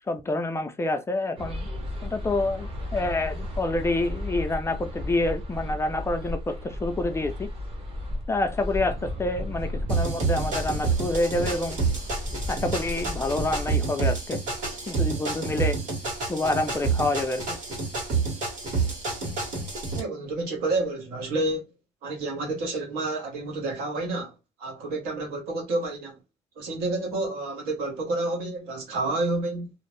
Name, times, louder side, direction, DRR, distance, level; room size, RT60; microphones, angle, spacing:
voice 1, 0.1-1.7 2.0-7.5 8.3-11.8 12.5-14.4 14.9-15.8 16.3-17.6, left 2 dB, 15° left, 0.3 m, -27 dB
sound 1, 1.4-13.7, left 1 dB, 35° right, 0.8 m, -34 dB
sound 2, 9.9-20.0, right 4 dB, 55° right, 1.4 m, -28 dB
voice 2, 19.9-21.7 22.0-26.2 26.6-29.7, right 2 dB, 85° right, 1.1 m, -29 dB
2.5 x 2.0 x 3.0 m
cardioid pair, 130°, 15 cm